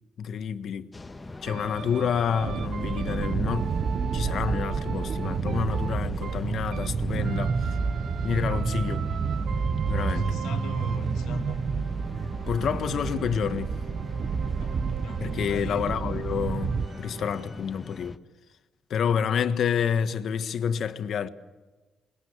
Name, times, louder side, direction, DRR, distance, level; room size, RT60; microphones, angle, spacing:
voice 1, 0.2-0.9 1.4-3.7 4.1-7.8 8.2-9.0 9.9-10.4 12.5-13.7 15.2-16.7 17.0-18.1 18.9-21.3, left 7 dB, 65° left, 1.5 m, -28 dB
sound 1, 0.9-18.2, left 2 dB, 20° left, 1.4 m, -42 dB
sound 2, 1.5-6.9 7.2-17.5, right 8 dB, 65° right, 0.8 m, -42 dB
sound 3, 2.4-16.9, right 5 dB, 50° right, 1.1 m, -29 dB
voice 2, 10.0-11.6 14.6-15.9, left 5 dB, 85° left, 2.4 m, -41 dB
27.5 x 21.0 x 8.1 m
cardioid pair, 90°, 0 cm